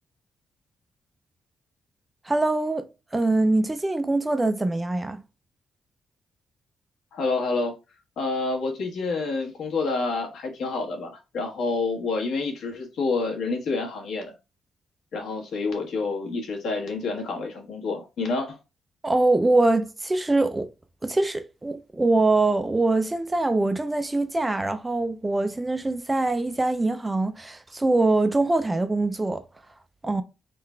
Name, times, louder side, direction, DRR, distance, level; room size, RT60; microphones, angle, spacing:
voice 1, 2.3-5.2 19.0-20.7 21.0-29.4 30.0-30.2, right 2 dB, 15° right, 0.4 m, -23 dB
voice 2, 7.1-7.7 8.2-14.3 15.1-18.6, left 3 dB, 70° left, 1.4 m, -28 dB
3.7 x 2.4 x 4.2 m
cardioid pair, 145°, 0 cm